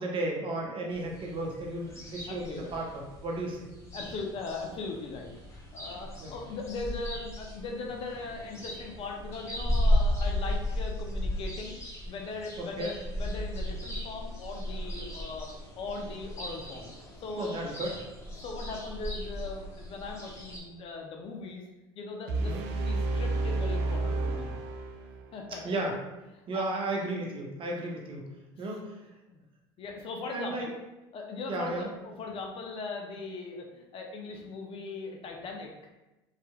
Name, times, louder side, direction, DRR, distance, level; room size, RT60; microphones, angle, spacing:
voice 1, 0.0-3.6 6.2-6.3 12.6-12.9 17.4-17.9 22.3-22.6 25.6-25.9 26.5-28.2 28.6-29.0 30.3-30.7 31.5-31.9, right 2 dB, 40° right, -1 dB, 0.8 m, -34 dB
sound 1, 0.9-20.6, left 1 dB, 20° left, 1.0 m, -35 dB
voice 2, 2.3-2.7 3.9-11.8 12.1-15.5 15.8-17.6 18.4-21.6 22.0-24.6 25.3-25.6 26.5-26.8 28.5-28.6 29.3-29.4 29.8-30.7 31.1-35.7, left 3 dB, 45° left, 1 dB, 0.6 m, -39 dB
sound 2, 22.3-25.3, right 2 dB, 70° right, 0.4 m, -30 dB
3.2 x 2.8 x 2.3 m, 1.0 s
hypercardioid pair, 80°, 14 cm